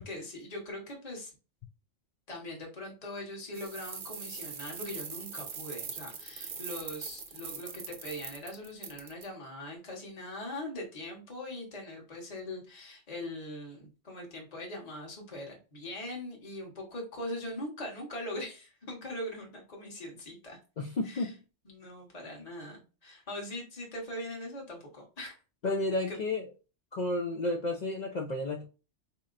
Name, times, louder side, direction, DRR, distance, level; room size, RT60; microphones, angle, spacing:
voice 1, 0.0-1.3 2.3-20.6 21.0-21.3 21.6-25.4 26.1-26.2, left 1 dB, 35° left, -1 dB, 1.2 m, -41 dB
sound 1, 3.5-9.2, right 5 dB, 50° right, 0.9 m, -41 dB
voice 2, 20.8-21.4 25.6-26.4 26.9-28.6, left 2 dB, 60° left, 3 dB, 0.4 m, -31 dB
4.2 x 2.9 x 2.4 m, 0.32 s
omnidirectional pair, 1.2 m